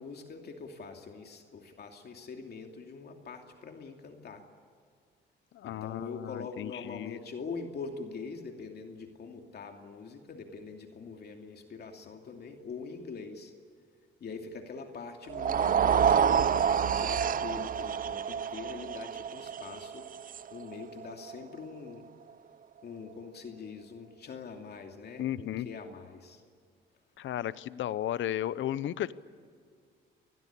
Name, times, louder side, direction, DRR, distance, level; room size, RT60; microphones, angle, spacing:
voice 1, 0.0-4.4 5.6-13.5 14.2-20.1 20.5-22.1 22.8-26.4, left 4 dB, 55° left, 3 dB, 2.7 m, -43 dB
voice 2, 5.5-7.2 25.2-25.7 27.2-29.1, left 12 dB, 75° left, 17 dB, 0.9 m, -34 dB
sound 1, 15.3-21.6, right 7 dB, 45° right, 0.6 m, -28 dB
26.5 x 20.5 x 8.6 m, 2.1 s
cardioid pair, 90°, 20 cm